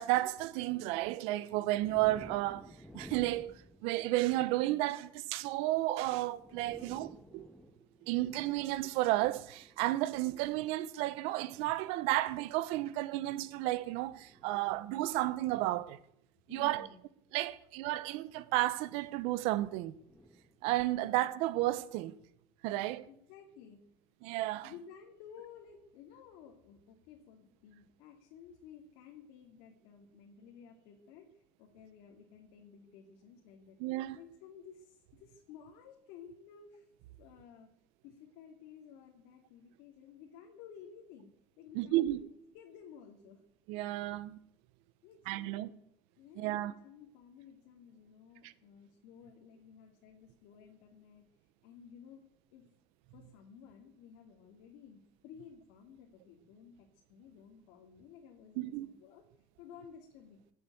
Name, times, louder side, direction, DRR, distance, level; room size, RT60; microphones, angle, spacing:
voice 1, 0.0-3.5 3.8-7.5 8.0-16.0 16.5-16.9 17.3-19.9 20.6-22.1 22.6-23.1 24.2-24.7 33.8-34.2 41.7-42.2 43.7-44.4 45.3-45.7 46.4-46.7 48.4-48.5 58.6-58.9, right 17 dB, 80° right, 1.1 m, -32 dB
sound 1, 1.8-4.5 5.8-5.9 6.2-9.8 10.7-11.0 12.1-15.1 16.6-16.7 18.4-19.2 20.0-21.4, equal, 5° left, 1.9 m, -55 dB
voice 2, 16.5-17.0 23.1-23.8 24.6-33.8 34.1-36.9 37.2-37.7 38.0-41.3 41.6-42.3 42.5-43.4 45.0-45.7 46.2-51.3 51.6-52.2 52.5-52.6 53.1-59.2 59.6-60.4, left 7 dB, 85° left, 2.7 m, -54 dB
18.0 x 8.6 x 9.2 m
cardioid pair, 145°, 10 cm